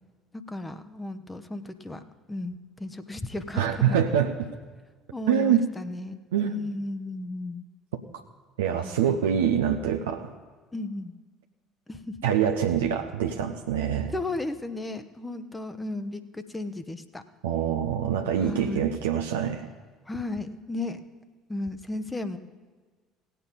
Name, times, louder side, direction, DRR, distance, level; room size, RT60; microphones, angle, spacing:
voice 1, 0.5-2.0 2.3-4.0 5.1-6.2 6.4-7.6 8.8-9.2 10.7-11.1 11.9-12.2 14.1-17.2 18.4-18.9 20.1-21.0 21.5-22.4, left 2 dB, 10° left, 9 dB, 0.9 m, -34 dB
voice 2, 3.5-4.3 5.3-5.7 6.3-6.7 8.6-10.3 12.2-14.1 17.4-19.7, right 9 dB, 70° right, 4 dB, 0.7 m, -25 dB
17.0 x 8.4 x 5.4 m, 1.4 s
figure-of-eight pair, 60°, 0 cm